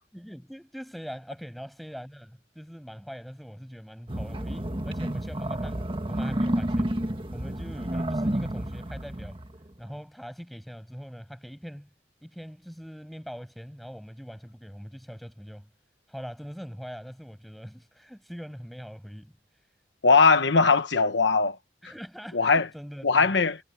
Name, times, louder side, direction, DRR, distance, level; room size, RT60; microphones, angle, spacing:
voice 1, 0.1-7.0 7.3-9.4 9.8-11.9 12.2-15.7 16.1-19.4 21.8-23.4, equal, ahead, 7.1 m, -42 dB
sound 1, 4.1-9.7, right 1 dB, 30° right, 1.6 m, -30 dB
voice 2, 20.0-21.6 22.3-22.7 23.0-23.6, left 4 dB, 85° left, 1.2 m, -20 dB
head